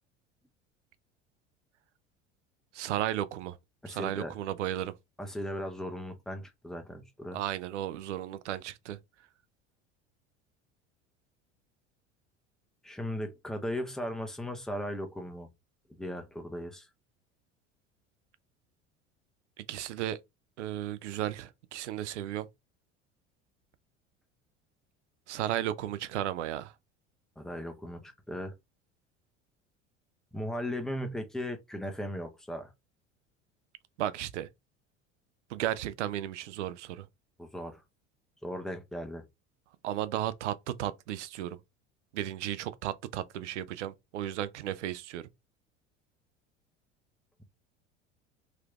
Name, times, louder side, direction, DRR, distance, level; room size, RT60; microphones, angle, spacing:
voice 1, 2.7-3.6 3.9-4.9 7.3-9.0 19.6-20.2 20.6-22.5 25.3-26.7 34.0-34.5 35.5-37.1 39.8-41.6 42.1-45.3, right 12 dB, 80° right, 0.5 m, -34 dB
voice 2, 3.8-4.3 5.2-7.4 12.8-15.5 16.0-16.9 27.4-28.5 30.3-32.7 37.4-37.8 38.4-39.2, equal, ahead, 0.7 m, -37 dB
3.2 x 3.0 x 2.3 m
hypercardioid pair, 70°, 36 cm